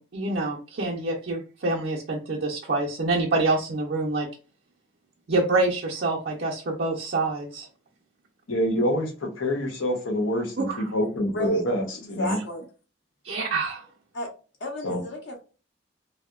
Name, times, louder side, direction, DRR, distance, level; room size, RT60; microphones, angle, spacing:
voice 1, 0.0-4.3 5.3-7.7 10.6-10.8 13.2-13.9, right 2 dB, 50° right, -4 dB, 0.5 m, -26 dB
voice 2, 8.5-11.8 12.1-12.4 14.8-15.0, left 1 dB, 90° left, 2 dB, 0.8 m, -26 dB
voice 3, 11.3-11.6 12.0-12.6 14.1-14.3 14.6-15.4, equal, 60° left, 1 dB, 0.7 m, -31 dB
2.7 x 2.0 x 2.3 m, 0.34 s
head